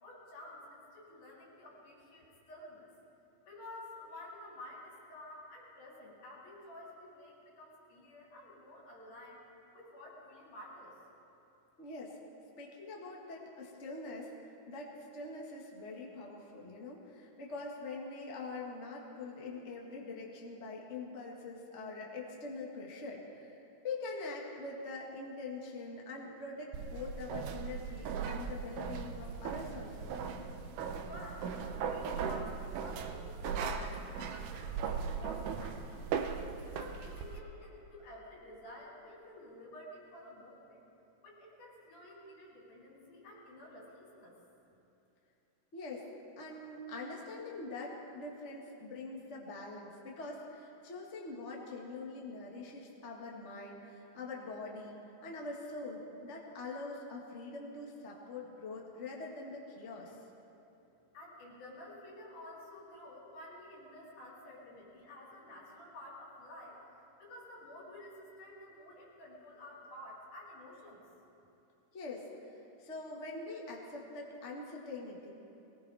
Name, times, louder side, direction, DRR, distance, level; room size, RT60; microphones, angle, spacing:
voice 1, 0.0-2.9 3.5-9.4 9.7-11.0 31.1-36.1 36.7-40.8 41.2-44.3 61.1-66.8 67.2-71.0, left 1 dB, 70° left, -5 dB, 5.0 m, -51 dB
voice 2, 11.8-12.2 12.6-30.1 45.7-46.1 46.4-60.2 71.9-75.3, left 3 dB, 30° left, -2 dB, 1.4 m, -44 dB
sound 1, 26.7-37.4, right 6 dB, 75° right, 2.2 m, -38 dB
22.0 x 19.0 x 3.5 m, 3.0 s
omnidirectional pair, 3.7 m